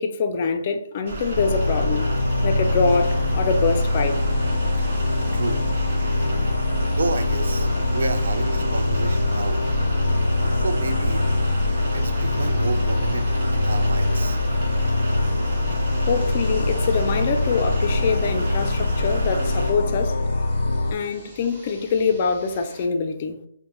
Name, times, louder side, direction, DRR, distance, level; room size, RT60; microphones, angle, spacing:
voice 1, 0.0-2.2 2.4-4.2 16.1-20.2 20.9-23.4, left 5 dB, 30° left, 0.4 m, -24 dB
sound 1, 1.0-19.7, right 2 dB, 45° right, 1.5 m, -31 dB
sound 2, 1.4-20.9, left 2 dB, 90° left, 0.4 m, -23 dB
sound 3, 2.9-22.8, equal, 10° right, 0.9 m, -44 dB
voice 2, 6.9-9.6 10.5-11.3 11.9-14.4, right 3 dB, 70° right, 0.5 m, -29 dB
6.1 x 2.1 x 3.0 m
hypercardioid pair, 170°, 0 cm